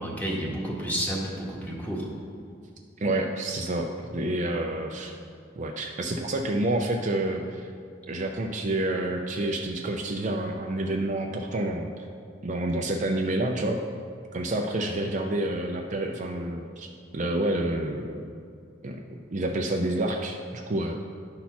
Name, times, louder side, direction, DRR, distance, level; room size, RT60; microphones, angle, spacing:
voice 1, 0.0-2.1, equal, 10° left, -4 dB, 1.5 m, -30 dB
voice 2, 3.0-5.1 5.6-7.7 8.1-11.9 12.4-13.8 14.3-16.9 17.1-18.2 18.8-19.0 19.3-21.0, right 1 dB, 40° right, 2 dB, 0.5 m, -28 dB
10.5 x 4.3 x 5.8 m, 2.3 s
head